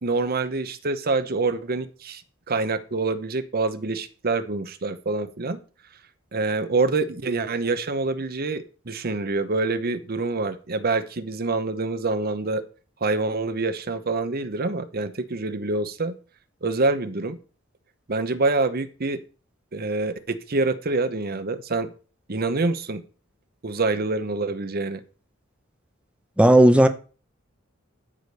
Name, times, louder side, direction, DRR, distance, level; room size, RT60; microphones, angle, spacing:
voice 1, 0.0-2.2 2.5-5.6 6.3-12.6 13.0-16.2 16.6-17.4 18.1-19.2 19.7-21.9 22.3-23.0 23.6-25.0, right 3 dB, 50° right, 0.9 m, -26 dB
voice 2, 26.4-26.9, right 1 dB, 5° right, 0.8 m, -13 dB
12.5 x 5.2 x 6.5 m
head